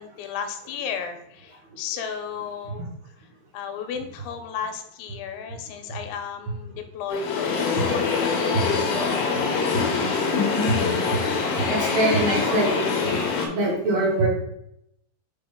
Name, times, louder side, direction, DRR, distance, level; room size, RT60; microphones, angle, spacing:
voice 1, 0.0-2.9 3.5-8.6, left 7 dB, 90° left, 6 dB, 3.0 m, -34 dB
sound 1, 7.1-13.5, left 4 dB, 70° left, 2.5 m, -24 dB
voice 2, 10.3-11.0 11.7-12.7 13.4-14.3, right 1 dB, 55° right, -4 dB, 2.0 m, -23 dB
6.2 x 4.9 x 3.6 m, 0.78 s
omnidirectional pair, 5.4 m